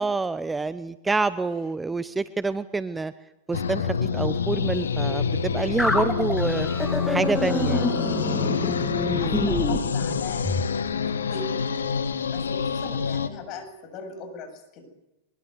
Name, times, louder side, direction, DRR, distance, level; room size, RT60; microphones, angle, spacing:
voice 1, 0.0-3.1 3.5-3.9 4.1-6.7 7.1-7.8 9.0-9.4, right 3 dB, 10° right, 15 dB, 0.8 m, -27 dB
sound 1, 3.5-13.3, left 6 dB, 80° left, 1.6 m, -27 dB
sound 2, 5.8-10.7, left 1 dB, 5° left, 2.7 m, -27 dB
voice 2, 7.3-8.3 8.6-11.6 12.3-14.9, left 4 dB, 45° left, 8 dB, 7.6 m, -40 dB
23.5 x 22.0 x 8.1 m, 0.91 s
hypercardioid pair, 95°, 0 cm